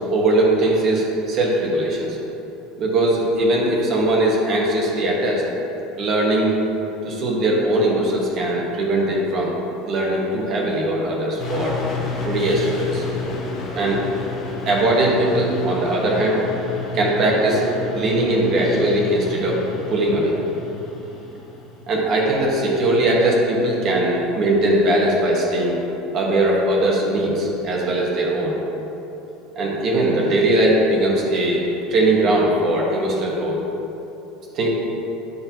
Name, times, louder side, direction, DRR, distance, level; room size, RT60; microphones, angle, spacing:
voice 1, 0.1-2.2 2.8-5.4 6.0-6.6 7.0-9.6 9.9-11.8 12.2-13.0 13.7-14.0 14.6-16.4 16.9-17.7 17.9-19.6 19.9-20.3 21.9-25.8 26.1-28.6 29.5-31.6 31.9-33.6 34.5-34.7, right 1 dB, 40° right, -2 dB, 1.3 m, -20 dB
sound 1, 11.4-21.8, left 4 dB, 40° left, 1.2 m, -31 dB
9.3 x 6.5 x 2.9 m, 3.0 s
supercardioid pair, 135°, 0 cm